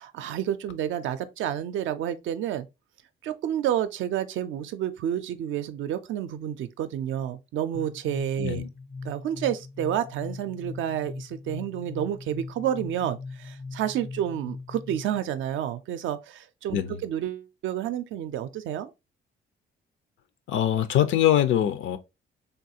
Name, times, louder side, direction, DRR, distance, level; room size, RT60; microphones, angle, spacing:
voice 1, 0.0-2.7 3.2-8.6 9.0-18.9, right 10 dB, 75° right, 0.4 m, -30 dB
sound 1, 7.7-15.3, left 3 dB, 5° left, 0.4 m, -40 dB
voice 2, 8.4-8.7 16.7-17.0 20.5-22.0, left 11 dB, 75° left, 0.5 m, -23 dB
3.5 x 2.4 x 2.7 m
cardioid pair, 90°, 20 cm